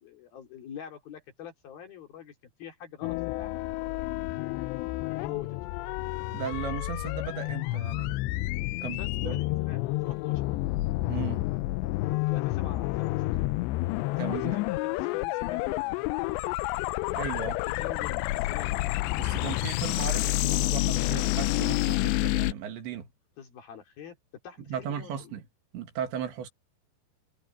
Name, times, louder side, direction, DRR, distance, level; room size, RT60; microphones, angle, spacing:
voice 1, 0.0-3.6 4.5-5.5 8.7-10.5 12.1-13.4 13.9-16.5 17.6-18.8 23.4-24.2 24.4-25.4, left 8 dB, 60° left, 4.5 m, -45 dB
sound 1, 3.0-22.5, left 19 dB, 85° left, 2.9 m, -29 dB
voice 2, 6.3-8.5 8.8-9.4 11.1-11.4 14.2-14.6 17.1-17.6 19.2-23.1 24.6-25.4 25.7-26.5, right 8 dB, 85° right, 4.5 m, -37 dB
omnidirectional pair, 5.0 m